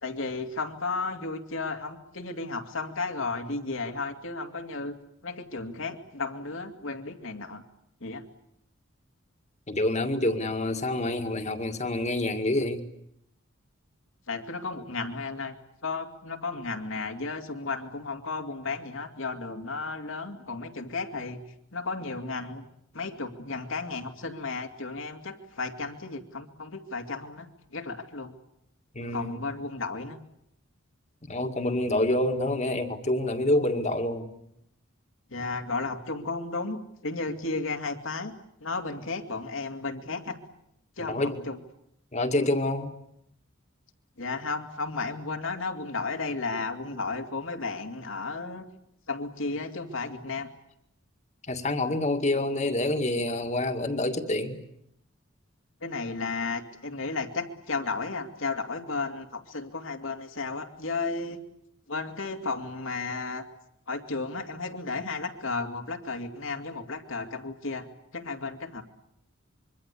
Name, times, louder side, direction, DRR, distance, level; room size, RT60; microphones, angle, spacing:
voice 1, 0.0-4.9 5.2-7.6 8.0-8.2 14.3-15.5 15.8-21.4 21.7-22.6 22.9-28.4 29.1-30.2 31.9-32.1 35.3-38.3 38.6-40.4 41.0-41.6 44.2-48.7 49.1-50.5 55.8-61.4 61.9-63.4 63.9-68.8, left 3 dB, 75° left, 5 dB, 2.6 m, -33 dB
voice 2, 9.7-12.8 28.9-29.4 31.3-34.3 41.1-41.4 42.1-42.9 51.5-54.6, left 1 dB, 35° left, 6 dB, 2.0 m, -27 dB
25.5 x 23.5 x 8.5 m, 0.77 s
head